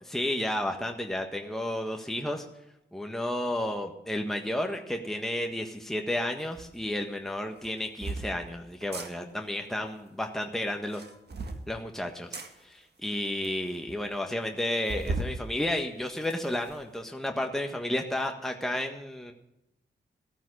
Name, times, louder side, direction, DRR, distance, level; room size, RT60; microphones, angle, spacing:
voice 1, 0.1-2.4 2.9-11.0 11.7-19.3, left 1 dB, ahead, 3 dB, 1.5 m, -32 dB
sound 1, 6.5-6.7 7.6-8.3 8.8-9.1 10.8-11.6 12.3-12.5 13.2-13.3 13.4-13.5 13.9-14.0 14.9-15.3 15.8-16.8, right 3 dB, 60° right, 1.8 m, -36 dB
15.0 x 9.1 x 6.5 m, 0.87 s
cardioid pair, 50°, 19 cm